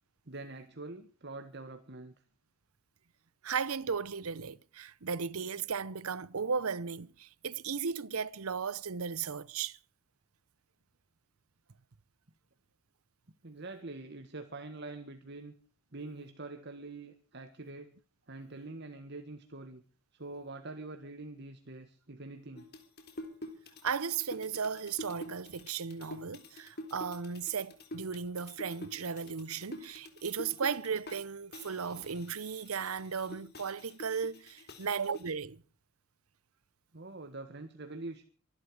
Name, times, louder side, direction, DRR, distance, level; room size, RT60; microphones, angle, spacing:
voice 1, 0.3-2.1 13.4-15.5 15.9-17.9 18.3-19.8 20.1-22.7 36.9-38.2, right 2 dB, 50° right, 1.6 m, -45 dB
voice 2, 3.4-9.8 23.8-35.6, right 6 dB, 85° right, 0.8 m, -36 dB
sound 1, 22.6-31.2 31.5-35.3, left 1 dB, 50° left, 3.6 m, -47 dB
24.5 x 12.0 x 4.9 m
head